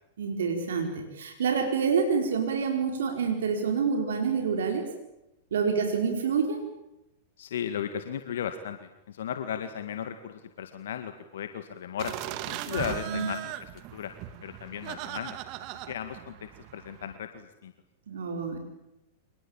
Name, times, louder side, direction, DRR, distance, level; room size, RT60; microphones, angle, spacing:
voice 1, 0.2-4.8 5.5-6.6 13.1-13.3 18.1-18.6, right 5 dB, 75° right, 4 dB, 4.7 m, -27 dB
voice 2, 7.4-12.2 12.4-14.1 14.4-15.4 15.9-17.7, left 9 dB, 70° left, 8 dB, 2.0 m, -36 dB
sound 1, 12.0-17.2, right 13 dB, 45° right, 2.3 m, -38 dB
27.0 x 20.5 x 9.0 m, 0.90 s
hypercardioid pair, 105°, 0 cm